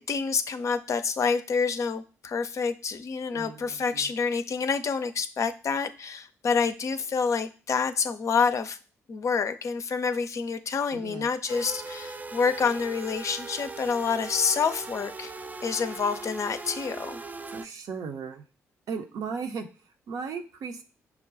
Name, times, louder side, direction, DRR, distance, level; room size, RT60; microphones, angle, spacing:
voice 1, 0.0-8.8 9.1-15.3 15.6-17.2, left 5 dB, 45° left, 10 dB, 0.5 m, -28 dB
voice 2, 3.3-4.1 10.9-11.3 17.5-18.4 18.9-20.8, right 5 dB, 60° right, 5 dB, 0.7 m, -37 dB
sound 1, 11.5-17.7, right 3 dB, 25° right, 0.4 m, -39 dB
6.0 x 2.2 x 3.8 m, 0.37 s
figure-of-eight pair, 40°, 7 cm